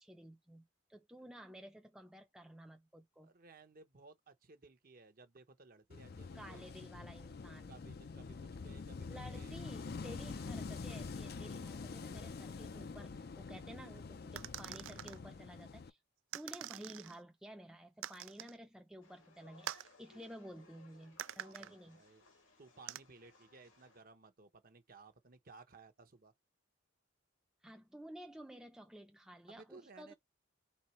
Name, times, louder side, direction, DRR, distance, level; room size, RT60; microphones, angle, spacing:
voice 1, 0.0-3.3 6.3-7.8 9.1-16.0 16.3-22.0 27.6-30.1, equal, 5° right, 0.5 m, -53 dB
voice 2, 3.2-6.6 7.7-9.1 9.3-9.6 21.6-26.3 29.5-30.1, right 3 dB, 45° right, 0.8 m, -59 dB
Wind / Waves surf, 5.9-15.9, left 4 dB, 50° left, 0.5 m, -46 dB
sound 1, 14.4-15.2 16.3-17.2 18.0-18.6 19.7-19.9 21.2-21.7 22.9-23.0, right 12 dB, 75° right, 0.3 m, -45 dB
sound 2, 19.0-24.0, left 2 dB, 85° left, 2.1 m, -65 dB
4.2 x 3.7 x 3.1 m
head